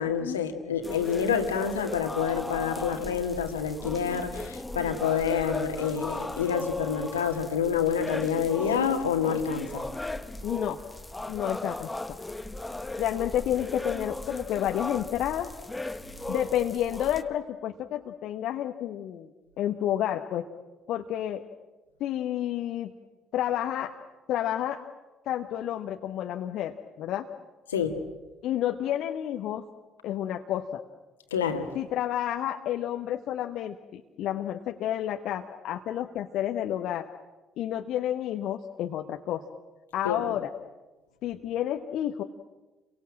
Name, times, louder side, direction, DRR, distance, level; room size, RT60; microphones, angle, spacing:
voice 1, 0.0-9.9 27.7-28.0 31.3-31.7 40.0-40.3, left 7 dB, 75° left, 6 dB, 2.0 m, -28 dB
sound 1, 0.8-17.2, left 2 dB, 10° left, 1.4 m, -37 dB
voice 2, 10.4-10.8 11.3-11.9 13.0-15.5 16.3-19.3 19.6-20.5 20.9-21.4 22.0-22.9 23.3-23.9 24.3-24.8 25.3-27.3 28.4-29.7 30.0-30.8 31.7-37.1 37.6-39.4 39.9-40.5 41.2-42.2, left 11 dB, 55° left, 5 dB, 1.1 m, -30 dB
30.0 x 23.5 x 7.6 m, 1.2 s
figure-of-eight pair, 50°, 0 cm